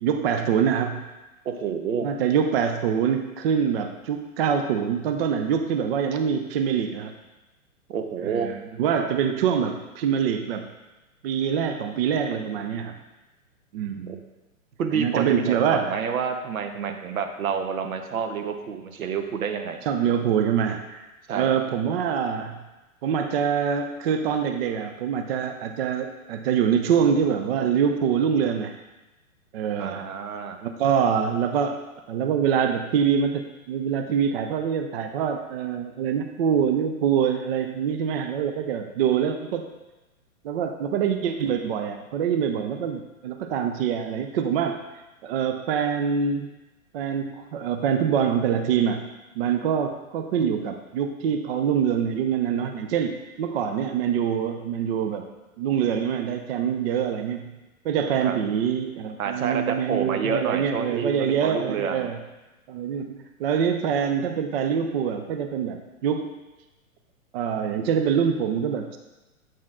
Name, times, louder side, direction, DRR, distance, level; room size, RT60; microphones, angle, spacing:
voice 1, 0.0-1.0 2.0-7.1 8.2-10.6 11.2-12.9 13.7-14.2 14.9-16.0 19.9-21.0 21.3-22.6 23.0-28.7 29.5-30.0 30.6-31.8 32.1-39.7 40.4-44.8 45.2-46.5 46.9-49.0 49.4-55.3 55.6-57.5 57.8-62.2 62.7-66.3 67.3-69.0, right 7 dB, 45° right, 6 dB, 0.5 m, -25 dB
voice 2, 1.4-2.1 7.9-8.5 14.1-14.2 14.8-19.8 21.3-21.5 29.8-30.6 58.2-58.4 59.2-62.1, right 6 dB, 75° right, 6 dB, 0.9 m, -28 dB
7.5 x 4.3 x 3.6 m, 1.1 s
hypercardioid pair, 125°, 43 cm